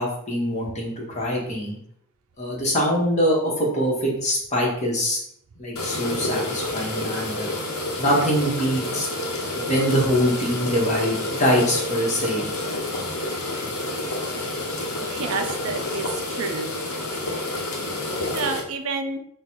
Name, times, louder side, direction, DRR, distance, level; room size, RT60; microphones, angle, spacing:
voice 1, 0.0-1.8 2.4-5.2 5.6-7.5 8.0-9.1 9.5-12.4, equal, 30° left, -3 dB, 1.1 m, -23 dB
sound 1, 5.8-18.6, left 2 dB, 80° left, 0.9 m, -29 dB
voice 2, 15.0-16.7 18.3-19.2, right 4 dB, 70° right, 7 dB, 0.4 m, -29 dB
3.8 x 2.2 x 4.5 m, 0.67 s
head